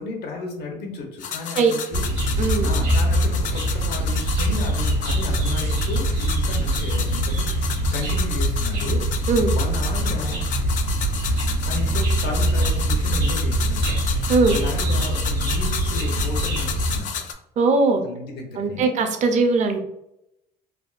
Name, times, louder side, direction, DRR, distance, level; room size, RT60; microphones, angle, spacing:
voice 1, 0.0-2.0 2.6-7.4 7.9-9.0 9.5-10.4 11.7-14.0 14.5-17.1 17.9-18.9, left 3 dB, 75° left, 1 dB, 0.8 m, -33 dB
sound 1, 1.2-17.3, left 7 dB, 50° left, 0.4 m, -32 dB
sound 2, 1.9-17.0, right 1 dB, 80° right, 1.3 m, -23 dB
voice 2, 17.6-18.0 18.6-19.8, right 3 dB, 45° right, 6 dB, 0.5 m, -19 dB
3.4 x 2.2 x 2.4 m, 0.83 s
cardioid pair, 110°, 17 cm